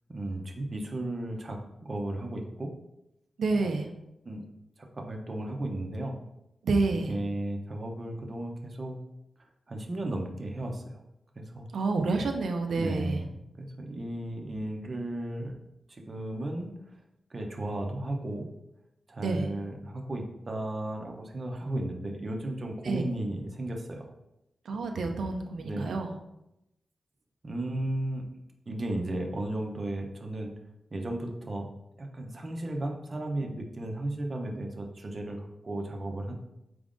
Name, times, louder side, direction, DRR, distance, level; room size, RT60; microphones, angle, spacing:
voice 1, 0.1-2.7 3.6-3.7 4.3-4.4 5.0-6.1 6.9-9.0 9.7-10.8 11.4-11.7 12.8-13.3 13.6-15.5 15.9-16.7 17.3-18.5 19.1-24.0 25.6-26.1 27.4-28.3 28.7-30.5 30.9-31.7 32.0-36.3, right 1 dB, 35° right, 2 dB, 0.6 m, -34 dB
voice 2, 3.4-3.9 6.6-7.2 11.7-13.2 19.2-19.5 22.8-23.0 24.7-26.1, right 3 dB, 85° right, 3 dB, 0.4 m, -29 dB
4.9 x 3.5 x 2.5 m, 0.86 s
wide cardioid pair, 145°, 0 cm